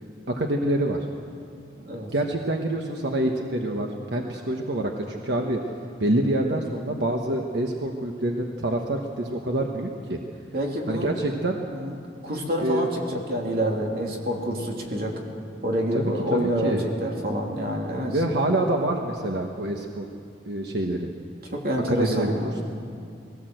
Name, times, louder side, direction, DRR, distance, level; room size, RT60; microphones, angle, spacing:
voice 1, 0.3-1.1 2.1-5.6 6.0-10.2 10.9-11.6 12.3-12.9 15.9-16.8 18.1-20.1 20.4-21.1 21.9-22.3, right 1 dB, 75° right, 2 dB, 1.3 m, -26 dB
voice 2, 1.8-2.1 10.5-11.1 11.7-11.9 12.2-15.2 15.6-18.2 21.4-22.5, equal, 55° right, 0 dB, 2.9 m, -27 dB
20.5 x 17.5 x 7.9 m, 2.4 s
head